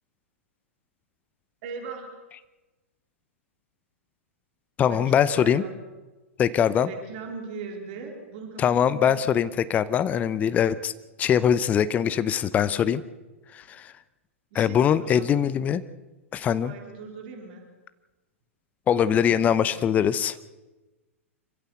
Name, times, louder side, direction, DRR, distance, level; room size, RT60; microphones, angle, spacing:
voice 1, 1.6-2.1 4.9-5.7 6.8-9.1 14.5-15.3 16.6-17.6 19.1-19.7, right 4 dB, 45° right, 2 dB, 4.0 m, -39 dB
voice 2, 4.8-5.6 6.4-6.9 8.6-10.9 11.2-13.0 13.5-13.9 14.5-15.8 16.3-16.7 18.9-20.5, left 8 dB, 20° left, 14 dB, 0.8 m, -22 dB
27.0 x 15.0 x 8.2 m, 1.2 s
figure-of-eight pair, 105°, 7 cm